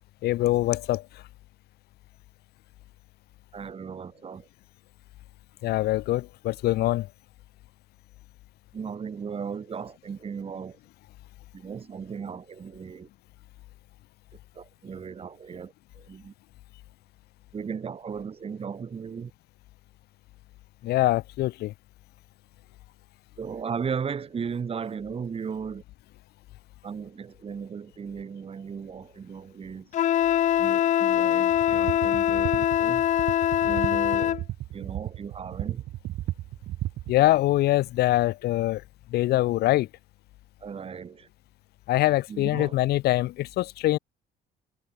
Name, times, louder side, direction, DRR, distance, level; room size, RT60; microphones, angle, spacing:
voice 1, 0.2-1.0 5.6-7.1 20.8-21.7 37.1-38.8 39.1-39.9 41.9-44.0, left 16 dB, 70° left, 0.7 m, -23 dB
voice 2, 3.5-4.5 8.7-10.8 11.5-13.1 14.6-16.3 17.5-19.3 23.4-25.8 26.8-29.9 30.6-33.0 33.6-34.4 34.7-35.8 40.6-41.3 42.3-42.7, right 6 dB, 35° right, 2.7 m, -36 dB
Wind instrument woodwind instrument, 29.9-34.4, left 11 dB, 45° left, 0.4 m, -23 dB
sound 1, 31.5-37.2, right 15 dB, 70° right, 1.2 m, -35 dB
cardioid pair, 110°, 17 cm